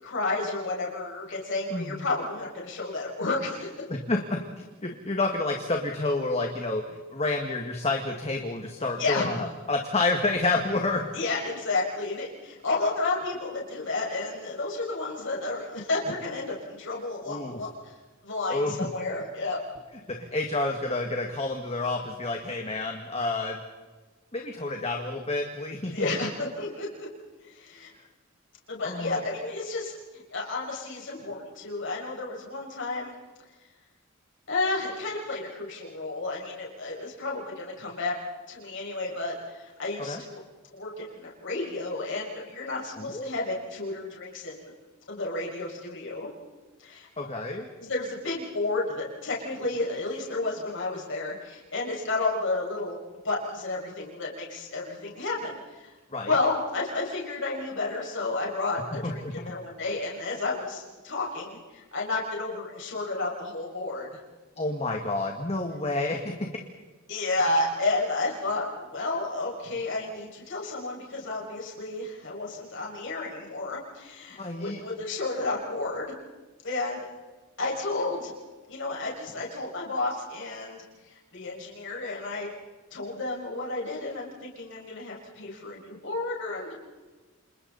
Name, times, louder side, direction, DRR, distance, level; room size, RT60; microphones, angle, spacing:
voice 1, 0.0-3.7 9.0-9.3 11.1-17.9 18.2-19.6 25.8-27.1 27.4-27.9 28.7-33.1 34.5-38.1 38.5-40.4 40.7-44.7 45.1-46.3 46.8-47.1 47.8-53.0 53.2-55.9 56.2-64.1 67.1-76.1 76.6-77.0 77.6-78.3 78.7-82.5 82.9-86.7, left 2 dB, 65° left, -3 dB, 6.3 m, -31 dB
voice 2, 1.7-2.0 3.9-4.4 4.8-11.1 17.3-17.6 18.5-18.9 20.1-23.6 24.3-26.2 28.8-29.2 40.0-40.2 43.0-43.3 47.2-47.7 56.1-56.3 59.0-59.3 64.6-66.6 74.4-74.8, left 2 dB, 30° left, 2 dB, 1.9 m, -29 dB
30.0 x 27.5 x 4.2 m, 1.3 s
head